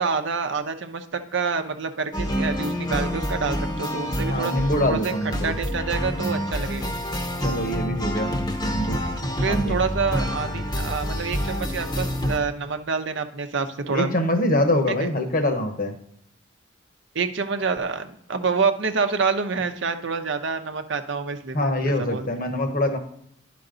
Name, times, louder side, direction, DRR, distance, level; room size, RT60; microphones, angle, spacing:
voice 1, 0.0-4.5 4.8-5.1 5.4-6.9 9.4-14.1 14.9-15.1 17.1-22.4, right 5 dB, 65° right, 7 dB, 0.7 m, -27 dB
sound 1, 2.1-12.4, equal, 20° left, 0.9 m, -27 dB
voice 2, 4.3-5.5 7.4-8.3 8.6-9.0 9.5-9.8 13.9-15.9 21.5-23.0, left 1 dB, 45° left, 6 dB, 1.1 m, -24 dB
11.0 x 5.2 x 3.8 m, 0.72 s
head